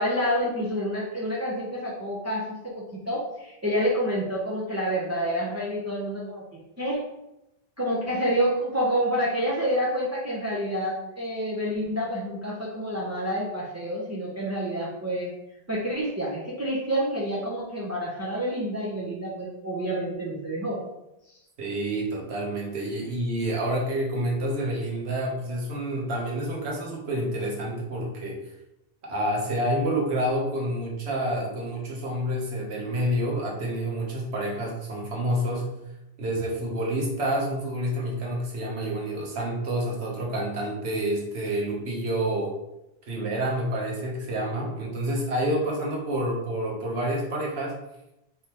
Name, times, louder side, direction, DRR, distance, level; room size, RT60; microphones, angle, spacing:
voice 1, 0.0-6.4 6.8-7.0 7.8-15.3 15.7-20.8, equal, 15° right, -5 dB, 0.7 m, -28 dB
voice 2, 21.6-28.4 29.0-35.7 36.2-42.5 43.1-47.8, right 1 dB, 85° right, -2 dB, 1.3 m, -28 dB
4.6 x 3.5 x 2.9 m, 0.89 s
omnidirectional pair, 1.1 m